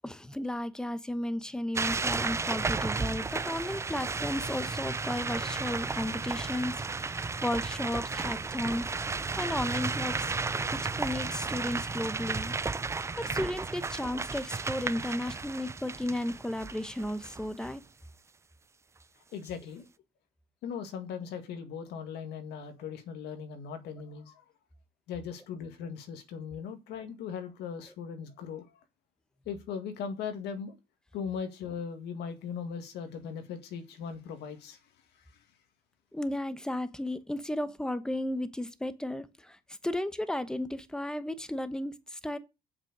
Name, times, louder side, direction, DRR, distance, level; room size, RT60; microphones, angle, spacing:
voice 1, 0.0-8.9 9.2-10.3 10.7-12.5 13.2-17.8 36.1-39.6 39.8-42.4, left 1 dB, 5° left, 1.0 m, -34 dB
sound 1, 1.8-17.7, right 4 dB, 15° right, 0.4 m, -33 dB
voice 2, 19.3-19.9 20.6-24.4 25.1-28.7 29.5-30.8 31.1-34.8, left 7 dB, 80° left, 1.9 m, -39 dB
7.6 x 6.0 x 6.7 m
cardioid pair, 110°, 17 cm